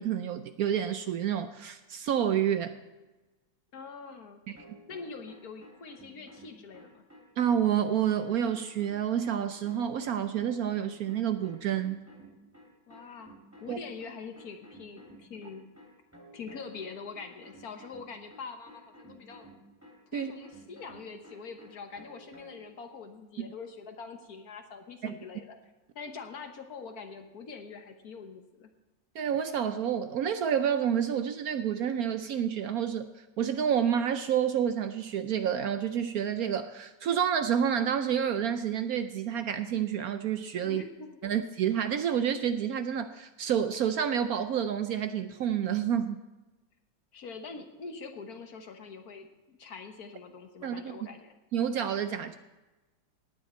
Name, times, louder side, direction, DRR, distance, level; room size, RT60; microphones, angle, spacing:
voice 1, 0.0-2.8 4.5-4.6 7.4-12.0 13.7-13.8 20.1-20.3 23.4-23.5 25.0-25.2 29.1-33.1 33.4-40.8 41.2-46.2 50.6-50.9 51.5-52.4, right 9 dB, 65° right, 10 dB, 0.9 m, -29 dB
voice 2, 3.7-4.4 4.9-7.0 12.9-15.7 16.3-19.5 20.1-25.6 25.9-28.7 40.6-41.3 47.1-51.3, left 5 dB, 60° left, 6 dB, 1.5 m, -44 dB
sound 1, 4.6-22.7, right 1 dB, 10° right, 2.6 m, -54 dB
17.5 x 9.3 x 4.3 m, 1.1 s
omnidirectional pair, 2.0 m